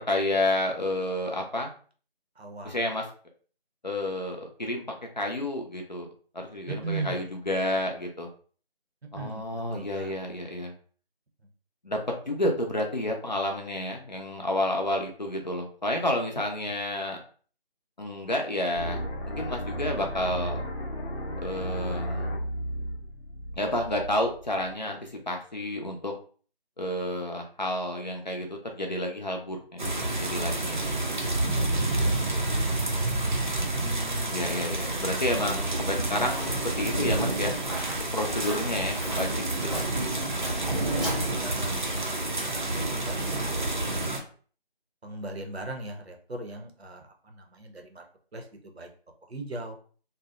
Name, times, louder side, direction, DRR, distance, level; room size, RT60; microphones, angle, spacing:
voice 1, 0.0-1.7 2.6-3.0 3.8-4.8 5.2-6.1 6.3-8.3 9.1-10.7 11.8-12.0 12.3-17.2 18.0-19.0 19.4-20.6 21.4-22.3 23.5-26.1 26.8-29.9 30.2-30.8 33.8-37.5 37.9-39.3, left 1 dB, 45° left, 2 dB, 0.5 m, -30 dB
voice 2, 2.4-2.8 6.7-7.3 9.1-10.1 16.7-16.8 31.6-32.6 40.8-44.3 45.0-48.1 48.3-48.9 49.2-49.8, right 2 dB, 90° right, 3 dB, 0.8 m, -39 dB
sound 1, 18.8-24.7, equal, 85° left, 0.7 m, -34 dB
sound 2, 29.8-44.2, right 2 dB, 50° right, 0.5 m, -29 dB
Walk footsteps, 35.7-42.0, equal, ahead, 0.5 m, -39 dB
2.6 x 2.0 x 2.4 m, 0.43 s
figure-of-eight pair, 170°, 31 cm